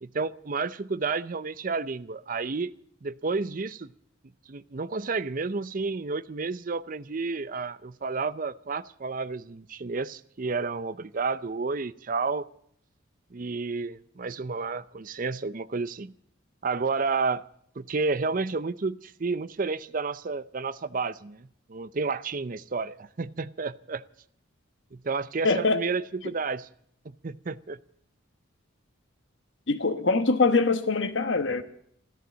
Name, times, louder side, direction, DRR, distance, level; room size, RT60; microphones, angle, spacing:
voice 1, 0.0-2.7 3.0-3.9 4.5-12.5 13.3-16.1 16.6-17.4 17.8-24.0 24.9-26.7 27.2-27.8, right 4 dB, 40° right, 15 dB, 0.5 m, -31 dB
voice 2, 25.4-25.8 29.7-31.6, left 3 dB, 60° left, 10 dB, 1.1 m, -23 dB
14.0 x 13.0 x 7.5 m, 0.67 s
head